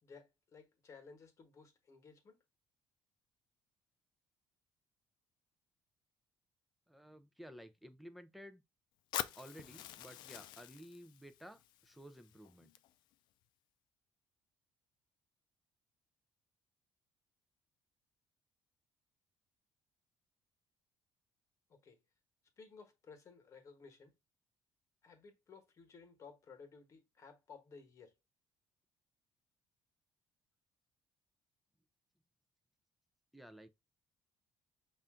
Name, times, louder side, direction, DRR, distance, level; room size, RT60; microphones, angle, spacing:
voice 1, 0.0-2.4 21.7-22.0 22.6-24.1 25.0-28.1, left 5 dB, 40° left, 1.2 m, -57 dB
voice 2, 6.9-8.6 9.3-12.7 33.3-33.7, equal, ahead, 0.5 m, -54 dB
Fire, 9.1-13.1, left 13 dB, 80° left, 0.4 m, -46 dB
5.5 x 2.5 x 3.6 m
cardioid pair, 125°, 8 cm